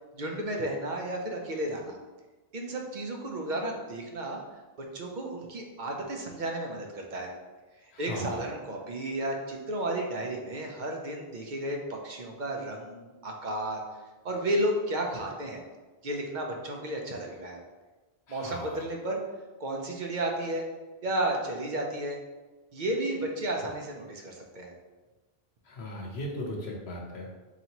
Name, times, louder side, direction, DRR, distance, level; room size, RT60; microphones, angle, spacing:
voice 1, 0.1-2.0 2.5-4.4 4.9-7.3 8.0-13.8 14.2-15.6 16.0-17.6 18.3-19.2 19.6-20.6 21.0-22.2 22.7-24.7, right 1 dB, 55° right, 1 dB, 0.7 m, -32 dB
voice 2, 7.9-8.4 18.3-18.8 25.7-27.4, left 1 dB, 85° left, -1 dB, 1.1 m, -38 dB
4.1 x 2.9 x 2.8 m, 1.2 s
omnidirectional pair, 1.0 m